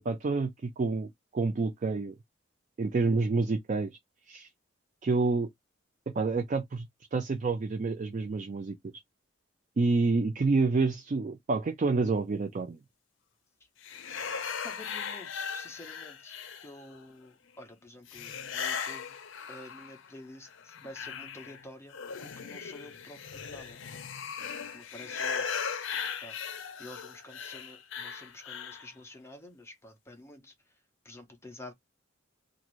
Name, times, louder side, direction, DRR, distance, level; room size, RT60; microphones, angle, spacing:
voice 1, 0.0-2.1 2.8-4.0 4.3-4.5 5.0-5.5 6.1-8.8 9.8-12.8, right 3 dB, 40° right, 0.4 m, -28 dB
sound 1, 13.8-17.0 18.1-20.1 20.5-28.9, left 6 dB, 75° left, 0.6 m, -38 dB
voice 2, 14.6-19.2 19.5-23.8 24.4-30.8 31.0-31.7, left 1 dB, 15° left, 0.7 m, -50 dB
2.5 x 2.5 x 2.9 m
head